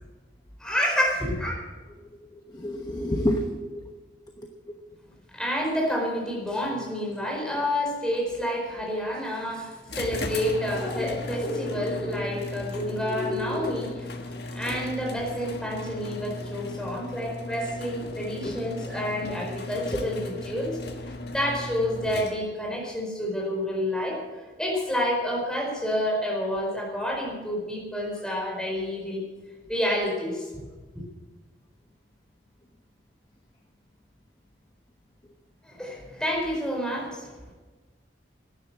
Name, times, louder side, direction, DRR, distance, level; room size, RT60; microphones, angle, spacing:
voice 1, 0.6-1.5 5.3-20.8 21.3-29.2 29.7-30.5 35.6-37.3, equal, 5° left, -2 dB, 4.7 m, -29 dB
voice 2, 2.5-3.8 4.4-4.5 18.4-18.5, left 1 dB, 20° left, 3 dB, 1.0 m, -28 dB
sound 1, 9.9-22.7, left 2 dB, 60° left, 1.6 m, -36 dB
13.0 x 10.5 x 7.4 m, 1.3 s
head